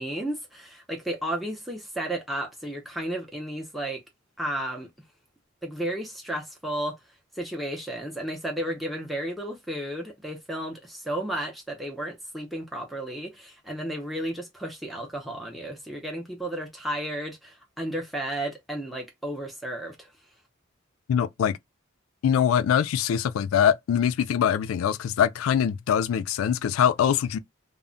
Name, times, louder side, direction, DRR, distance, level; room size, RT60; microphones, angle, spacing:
voice 1, 0.0-4.0 4.4-4.9 5.6-6.9 7.3-20.1, right 1 dB, ahead, 0.5 m, -33 dB
voice 2, 21.1-21.5 22.2-27.4, left 8 dB, 85° left, 0.3 m, -23 dB
2.1 x 2.0 x 3.7 m
head